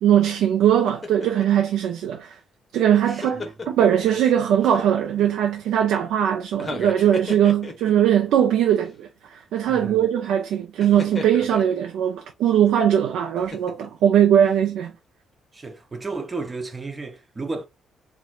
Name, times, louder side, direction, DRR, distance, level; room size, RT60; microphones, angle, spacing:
voice 1, 0.0-2.4 2.7-14.9, right 10 dB, 85° right, 0.4 m, -20 dB
sound 1, 0.9-1.6 2.8-4.3 4.6-5.3 6.5-8.1 8.7-8.9 10.8-11.8 13.3-14.0 14.4-14.6, left 3 dB, 30° left, 0.9 m, -36 dB
voice 2, 3.1-3.5 9.7-10.1 15.5-17.7, right 3 dB, 25° right, 0.7 m, -33 dB
4.1 x 2.2 x 2.3 m
cardioid pair, 90°, 0 cm